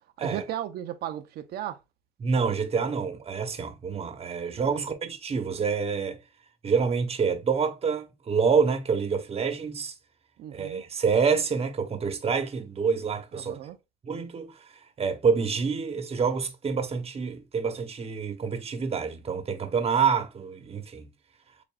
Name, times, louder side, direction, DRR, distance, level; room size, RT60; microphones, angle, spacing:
voice 1, 0.2-1.8 4.7-4.9 10.4-10.8 13.3-13.8, right 11 dB, 70° right, 0.7 m, -35 dB
voice 2, 2.2-6.2 6.6-9.9 10.5-13.6 14.0-14.5 15.0-21.1, right 5 dB, 35° right, 1.0 m, -27 dB
6.9 x 2.6 x 2.4 m
cardioid pair, 90°, 17 cm